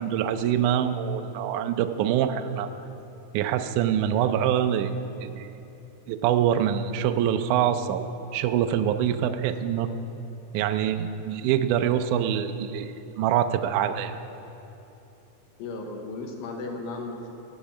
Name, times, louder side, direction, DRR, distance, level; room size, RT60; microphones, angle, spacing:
voice 1, 0.0-2.7 3.3-5.5 6.1-8.1 8.3-9.9 10.5-14.2, right 9 dB, 80° right, 8 dB, 1.8 m, -25 dB
voice 2, 15.6-17.3, left 3 dB, 80° left, 2 dB, 3.0 m, -35 dB
15.5 x 6.0 x 8.8 m, 2.9 s
omnidirectional pair, 4.2 m